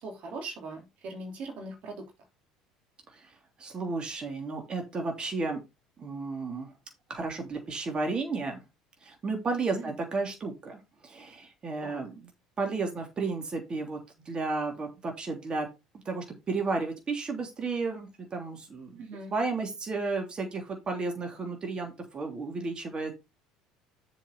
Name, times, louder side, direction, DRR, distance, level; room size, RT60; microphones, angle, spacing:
voice 1, 0.0-2.0 9.7-9.9 11.8-12.0 19.0-19.3, right 2 dB, 55° right, 2 dB, 3.3 m, -40 dB
voice 2, 3.6-5.6 6.0-6.7 7.1-8.6 9.0-12.3 12.6-14.0 14.2-15.7 16.0-19.0 19.3-23.1, right 3 dB, 35° right, 3 dB, 3.1 m, -33 dB
7.3 x 5.5 x 5.2 m, 0.24 s
hypercardioid pair, 65°, 3 cm